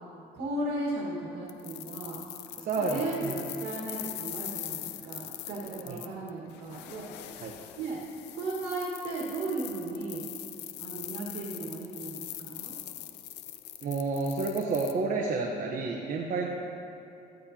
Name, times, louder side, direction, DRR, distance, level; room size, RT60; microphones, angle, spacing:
voice 1, 0.3-2.2 2.8-7.1 7.8-8.0 8.3-10.3 10.8-12.8, right 2 dB, 85° right, -4 dB, 1.7 m, -35 dB
sound 1, 1.5-14.9, left 13 dB, 85° left, 0.6 m, -42 dB
voice 2, 2.6-3.3 5.8-6.0 7.4-7.5 13.8-16.5, right 3 dB, 55° right, 0 dB, 1.0 m, -30 dB
14.5 x 10.5 x 2.8 m, 2.7 s
cardioid pair, 110°, 17 cm